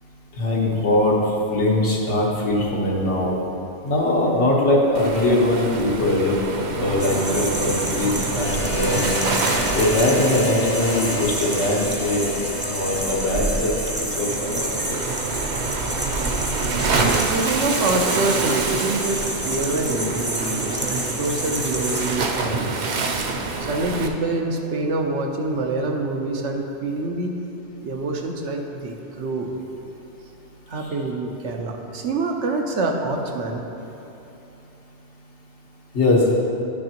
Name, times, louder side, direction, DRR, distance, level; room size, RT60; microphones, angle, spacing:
voice 1, 0.4-3.4 3.8-6.3 6.8-9.1 9.7-12.3 12.6-15.0 35.9-36.3, left 1 dB, 85° left, -4 dB, 1.6 m, -21 dB
Waves surf, 4.9-24.1, right 3 dB, 50° right, 0.6 m, -27 dB
sound 1, 7.0-22.2, right 1 dB, 10° right, 0.6 m, -30 dB
Harmonica, 8.4-14.4, left 4 dB, 40° left, 0.7 m, -32 dB
voice 2, 17.1-23.0 23.6-27.3 27.8-29.5 30.7-33.6, right 2 dB, 80° right, 2 dB, 1.1 m, -26 dB
11.0 x 6.5 x 2.9 m, 2.9 s
omnidirectional pair, 1.2 m